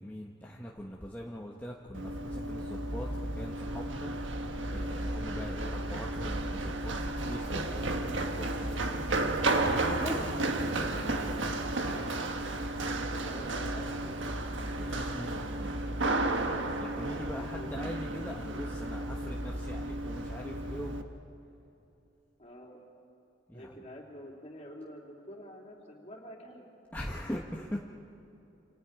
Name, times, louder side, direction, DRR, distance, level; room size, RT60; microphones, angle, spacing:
voice 1, 0.0-4.1 4.7-9.1 9.5-10.2 10.9-11.5 14.7-15.5 16.8-21.1 23.5-23.7 26.9-27.8, equal, 10° left, -3 dB, 1.1 m, -42 dB
Run, 1.9-21.0, right 2 dB, 80° right, 1.4 m, -33 dB
voice 2, 10.0-10.4 13.1-14.4 16.4-16.7 17.0-17.9 22.4-22.8 23.5-26.7, equal, 35° left, -1 dB, 3.4 m, -48 dB
28.0 x 28.0 x 4.9 m, 2.9 s
head